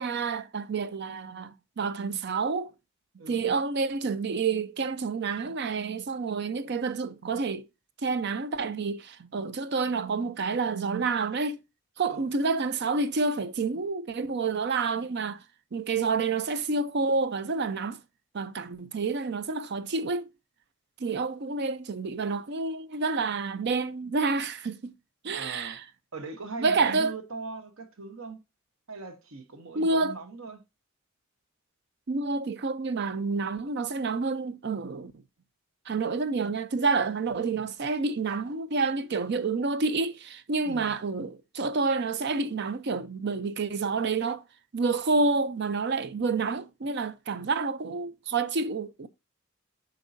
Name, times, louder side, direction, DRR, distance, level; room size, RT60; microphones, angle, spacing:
voice 1, 0.0-2.7 3.1-7.7 8.0-11.6 12.0-15.4 15.7-18.0 18.3-20.3 21.0-24.9 25.2-25.8 26.6-27.1 29.7-30.2 32.1-35.1 35.9-44.4 44.7-49.1, right 4 dB, 55° right, 0.5 m, -29 dB
voice 2, 25.3-25.8 26.1-28.4 28.9-30.6 37.3-37.6 40.6-40.9, right 3 dB, 75° right, 1.0 m, -41 dB
8.1 x 5.3 x 2.6 m
head